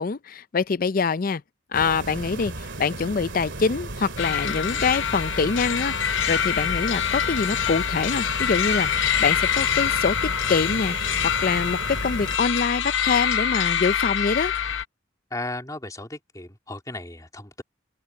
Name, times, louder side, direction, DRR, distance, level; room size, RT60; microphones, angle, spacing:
voice 1, 0.0-1.4 1.7-11.1 11.4-14.5, left 5 dB, 45° left, 0.5 m, -25 dB
sound 1, 1.7-12.4, right 2 dB, 70° right, 2.4 m, -36 dB
sound 2, 4.2-14.8, left 8 dB, 75° left, 0.8 m, -25 dB
voice 2, 15.3-17.6, left 2 dB, 20° left, 2.8 m, -35 dB
open air
head